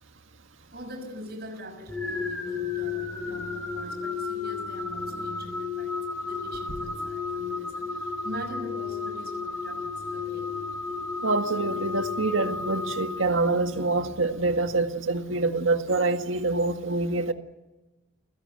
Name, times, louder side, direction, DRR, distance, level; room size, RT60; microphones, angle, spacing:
voice 1, 0.7-5.9 6.2-7.8 8.2-10.4, equal, 50° right, 5.9 m, -42 dB
sound 1, 1.9-13.9, left 4 dB, 5° left, 3.9 m, -33 dB
voice 2, 11.2-17.3, right 3 dB, 75° right, 1.9 m, -26 dB
29.0 x 17.0 x 8.0 m
head